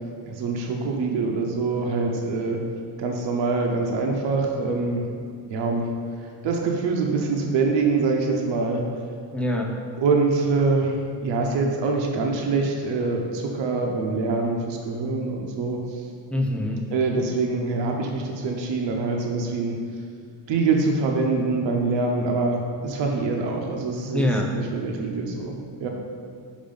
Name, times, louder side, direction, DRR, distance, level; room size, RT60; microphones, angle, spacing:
voice 1, 0.2-2.6 3.0-5.0 5.5-5.9 6.4-8.8 10.0-11.0 11.2-16.0 16.9-19.8 20.5-24.2 24.5-25.9, right 3 dB, 75° right, 1 dB, 0.9 m, -24 dB
voice 2, 9.3-9.7 16.3-16.9 24.1-24.5, left 1 dB, 5° left, -1 dB, 0.7 m, -24 dB
5.3 x 4.9 x 5.3 m, 2.2 s
cardioid pair, 110°, 44 cm